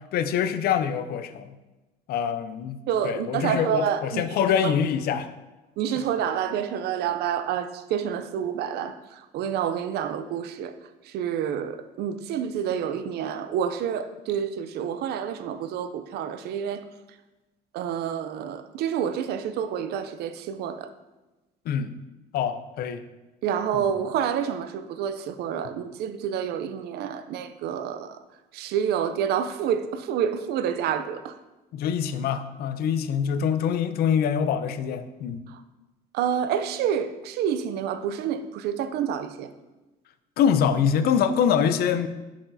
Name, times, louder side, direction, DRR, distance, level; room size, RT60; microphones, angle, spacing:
voice 1, 0.1-1.5 2.1-2.8 3.0-5.3 21.7-21.9 22.3-23.0 31.7-35.4 40.4-42.1, left 8 dB, 65° left, 10 dB, 0.5 m, -24 dB
voice 2, 2.9-4.2 4.6-4.7 5.8-10.8 11.0-16.8 17.7-20.9 23.4-28.2 28.5-31.4 35.5-35.6 36.1-39.5, right 8 dB, 75° right, 11 dB, 0.5 m, -28 dB
6.1 x 5.9 x 2.7 m, 1.1 s
cardioid pair, 110°, 17 cm